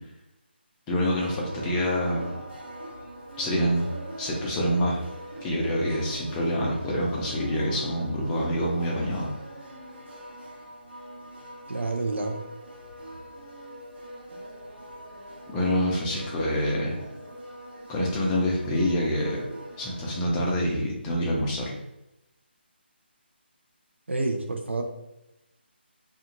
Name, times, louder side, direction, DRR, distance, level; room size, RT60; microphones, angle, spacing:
voice 1, 0.9-2.4 3.4-3.9 4.2-5.0 5.4-9.3 15.5-17.0 17.9-19.4 19.8-21.7, equal, 10° left, -3 dB, 0.4 m, -26 dB
sound 1, 1.0-20.5, right 1 dB, 70° right, 1.0 m, -42 dB
voice 2, 11.7-12.4 24.1-24.8, right 2 dB, 85° right, 3 dB, 0.6 m, -28 dB
2.4 x 2.3 x 2.9 m, 0.91 s
figure-of-eight pair, 160°, 6 cm